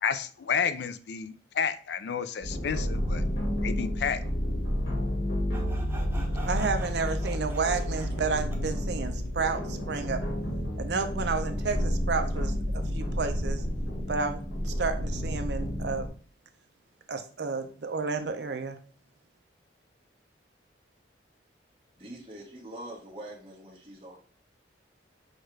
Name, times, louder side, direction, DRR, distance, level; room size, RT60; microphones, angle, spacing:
voice 1, 0.0-3.2 3.6-4.2, left 7 dB, 60° left, 13 dB, 0.4 m, -30 dB
sound 1, 2.4-16.1, equal, 90° left, 1.6 m, -30 dB
Sawing, 5.5-8.7, right 1 dB, 10° right, 0.5 m, -45 dB
voice 2, 6.4-10.2 10.8-13.6 14.1-16.1 17.1-18.8, right 4 dB, 60° right, 7 dB, 0.5 m, -31 dB
voice 3, 22.0-24.2, right 1 dB, 30° right, -4 dB, 1.3 m, -44 dB
6.2 x 2.4 x 3.1 m, 0.42 s
head